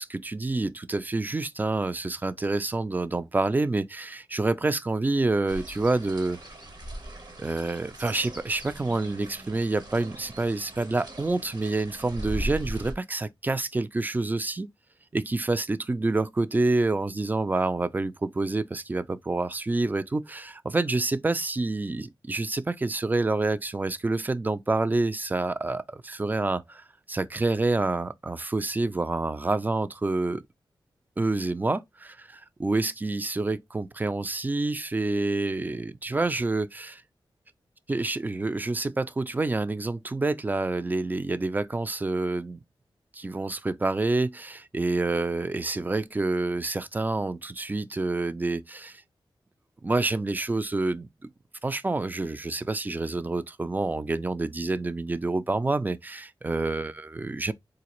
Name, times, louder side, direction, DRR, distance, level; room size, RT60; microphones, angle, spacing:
voice 1, 0.0-6.4 7.4-14.7 15.1-30.4 31.2-37.0 37.9-42.6 43.1-49.0 49.8-51.1 51.6-57.5, right 2 dB, 20° right, 0.3 m, -28 dB
sound 1, 5.5-12.9, right 1 dB, 55° right, 1.1 m, -39 dB
3.7 x 2.5 x 2.9 m
wide cardioid pair, 85°, 9 cm